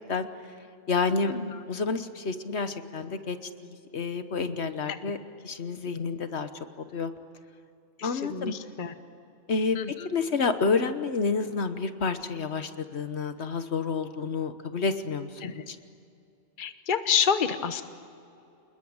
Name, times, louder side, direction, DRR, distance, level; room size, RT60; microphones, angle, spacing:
voice 1, 0.9-1.3 1.7-3.4 3.6-5.2 5.4-6.5 6.8-7.1 8.0-8.5 9.5-9.8 10.0-15.8, left 4 dB, 70° left, 10 dB, 1.4 m, -29 dB
voice 2, 8.0-8.9 9.7-10.1 15.4-15.6 16.6-17.8, left 7 dB, 45° left, 10 dB, 1.2 m, -28 dB
28.0 x 21.0 x 8.8 m, 2.6 s
omnidirectional pair, 1.2 m